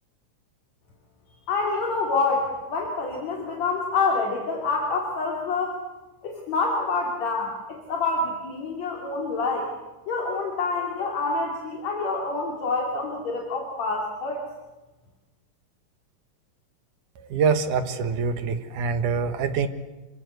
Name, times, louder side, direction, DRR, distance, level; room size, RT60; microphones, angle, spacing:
voice 1, 1.5-5.8 6.2-9.7 10.1-14.4, left 3 dB, 55° left, -1 dB, 4.0 m, -27 dB
voice 2, 17.3-19.7, right 5 dB, 75° right, 9 dB, 3.0 m, -24 dB
28.0 x 23.0 x 8.1 m, 1.1 s
omnidirectional pair, 3.7 m